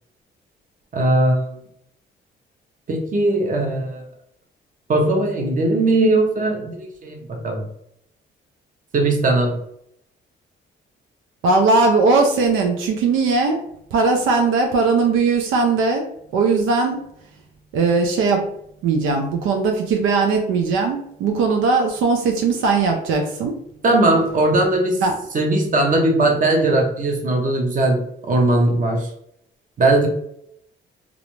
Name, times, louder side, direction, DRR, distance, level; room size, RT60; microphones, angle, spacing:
voice 1, 0.9-1.6 2.9-4.1 4.9-7.6 8.9-9.6 23.8-25.0 25.3-29.1 29.8-30.1, right 2 dB, 40° right, 2 dB, 0.8 m, -19 dB
voice 2, 11.4-13.6 13.9-17.1 17.7-18.5 18.8-23.6 25.0-25.2, right 4 dB, 85° right, 3 dB, 0.4 m, -19 dB
2.4 x 2.1 x 3.0 m, 0.72 s
cardioid pair, 90°, 20 cm